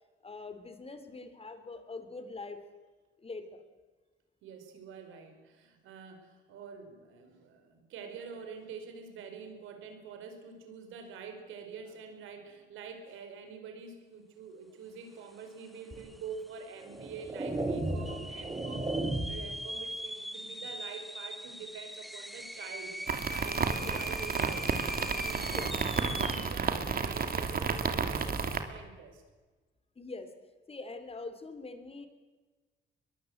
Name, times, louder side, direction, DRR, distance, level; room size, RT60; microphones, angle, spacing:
voice 1, 0.2-2.6 3.2-3.6 23.8-24.0 25.5-25.7 30.0-30.3 30.7-32.1, left 3 dB, 30° left, 10 dB, 3.5 m, -43 dB
voice 2, 4.4-22.9 23.3-29.2, right 5 dB, 90° right, 6 dB, 4.9 m, -46 dB
sound 1, 15.7-15.8 16.0-16.5 17.0-17.1 17.9-26.6, equal, ahead, 1.4 m, -41 dB
sound 2, 15.9-16.1 16.8-19.6, right 2 dB, 20° right, 3.0 m, -34 dB
sound 3, 23.1-28.6, right 5 dB, 50° right, 2.9 m, -32 dB
23.0 x 22.5 x 8.1 m, 1.3 s
cardioid pair, 90°, 20 cm